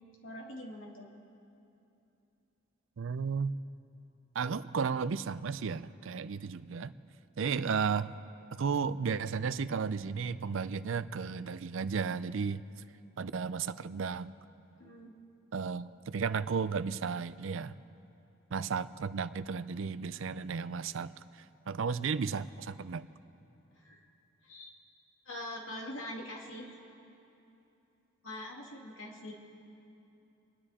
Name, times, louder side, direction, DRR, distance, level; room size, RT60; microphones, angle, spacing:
voice 1, 0.2-1.1 14.8-15.2 23.7-24.0 24.4-24.7 25.3-26.8 28.2-29.3, left 1 dB, 65° left, -1 dB, 2.3 m, -43 dB
voice 2, 3.0-3.5 4.3-6.9 7.4-8.1 8.6-12.6 13.2-14.3 15.5-17.7 18.5-23.1, right 5 dB, 65° right, 15 dB, 0.4 m, -34 dB
29.0 x 10.5 x 4.2 m, 2.8 s
head